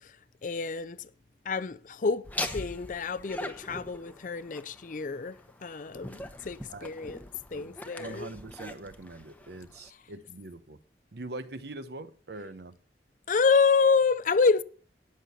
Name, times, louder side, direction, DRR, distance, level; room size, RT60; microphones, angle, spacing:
voice 1, 0.4-1.1 1.5-2.2 2.5-7.2 7.5-8.3 13.3-14.6, left 4 dB, 45° left, 0.5 m, -27 dB
Laughter, 2.2-9.9, left 1 dB, 10° left, 0.9 m, -41 dB
voice 2, 7.5-10.8 11.1-12.7, right 2 dB, 65° right, 0.8 m, -43 dB
18.0 x 6.6 x 4.1 m
head